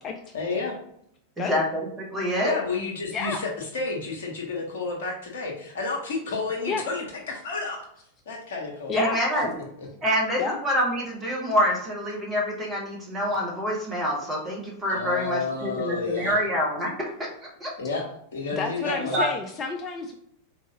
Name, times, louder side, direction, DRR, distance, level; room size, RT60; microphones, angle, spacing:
voice 1, 0.3-0.8 2.4-7.9 8.3-8.9 9.6-9.9 14.9-16.4 17.8-19.2, left 4 dB, 60° left, 0 dB, 0.9 m, -31 dB
voice 2, 1.4-2.5 8.9-9.5 10.0-17.3 17.6-17.7 19.1-19.3, equal, 15° right, -3 dB, 1.2 m, -26 dB
voice 3, 18.5-20.1, left 5 dB, 25° left, 3 dB, 0.3 m, -30 dB
3.5 x 2.5 x 2.9 m, 0.71 s
figure-of-eight pair, 90°, 0 cm